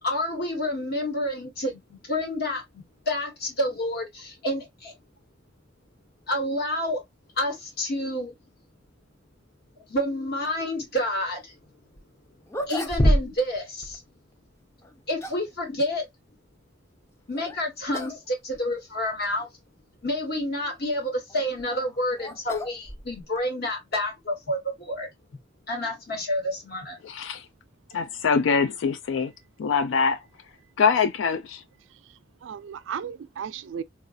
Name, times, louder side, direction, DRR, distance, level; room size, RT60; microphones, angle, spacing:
voice 1, 0.0-2.6 3.1-4.9 6.3-7.0 7.4-8.3 9.9-11.6 12.7-14.0 15.1-16.1 17.3-19.5 20.0-25.1 25.7-27.0, left 1 dB, 55° left, 1.3 m, -29 dB
sound 1, 12.0-12.1 12.5-13.6 13.8-14.0 14.8-15.5 17.3-17.6 17.9-18.2 18.5-18.6 19.4-19.5 21.3-23.4, equal, 15° left, 0.4 m, -27 dB
voice 2, 27.0-27.5 27.9-29.3 29.6-30.2 30.8-31.6, left 5 dB, 75° left, 0.3 m, -23 dB
voice 3, 31.9-33.8, right 8 dB, 80° right, 0.3 m, -36 dB
3.9 x 2.4 x 2.5 m
head